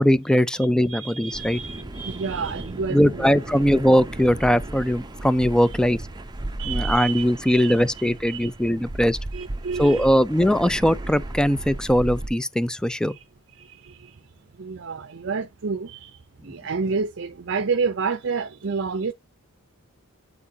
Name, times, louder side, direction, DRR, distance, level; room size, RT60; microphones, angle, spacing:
voice 1, 0.0-1.6 2.9-6.0 6.7-9.2 9.8-13.1, equal, 5° left, 0.3 m, -20 dB
voice 2, 0.5-3.3 5.6-5.8 6.6-8.5 9.3-10.2 13.0-13.2 13.5-14.2 14.6-19.1, right 5 dB, 60° right, 0.6 m, -30 dB
sound 1, 1.3-12.3, right 1 dB, 20° right, 0.8 m, -35 dB
8.6 x 4.7 x 2.7 m
head